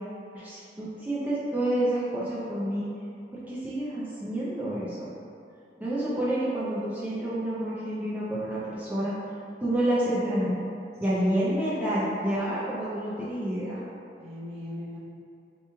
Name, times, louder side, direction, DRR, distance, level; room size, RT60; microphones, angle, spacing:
voice 1, 0.3-2.9 3.5-5.1 5.8-9.1 9.6-10.6 11.0-13.8, right 1 dB, 10° right, -10 dB, 0.5 m, -28 dB
voice 2, 11.1-11.5 11.8-12.3 14.2-15.0, left 1 dB, 35° right, -9 dB, 0.9 m, -39 dB
3.0 x 2.4 x 4.3 m, 2.6 s
head